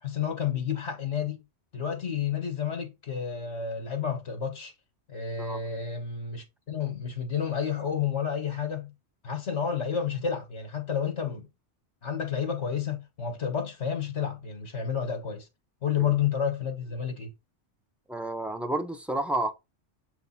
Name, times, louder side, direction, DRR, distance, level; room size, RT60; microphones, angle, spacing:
voice 1, 0.0-1.4 1.7-4.7 5.1-8.9 9.2-11.5 12.0-15.5 15.8-17.3, left 7 dB, 70° left, 1.5 m, -30 dB
voice 2, 18.1-19.5, right 2 dB, ahead, 0.4 m, -30 dB
7.1 x 3.2 x 4.2 m
omnidirectional pair, 1.2 m